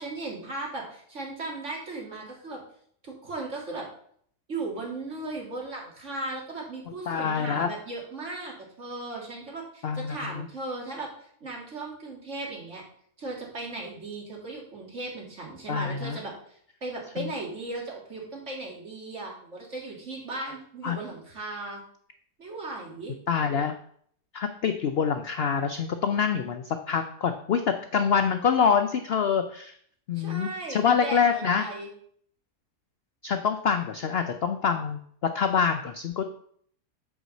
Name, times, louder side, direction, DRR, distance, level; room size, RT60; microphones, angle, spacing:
voice 1, 0.0-2.6 3.0-3.9 4.5-11.1 11.4-12.8 13.2-21.8 22.4-23.2 30.1-31.9, right 2 dB, 45° right, -2 dB, 2.4 m, -37 dB
voice 2, 7.1-7.7 9.8-10.5 15.7-16.2 17.2-17.3 20.8-21.0 23.3-23.8 24.3-29.7 30.1-31.7 33.2-36.2, left 6 dB, 75° left, 7 dB, 0.5 m, -26 dB
8.1 x 4.8 x 6.4 m, 0.62 s
omnidirectional pair, 1.7 m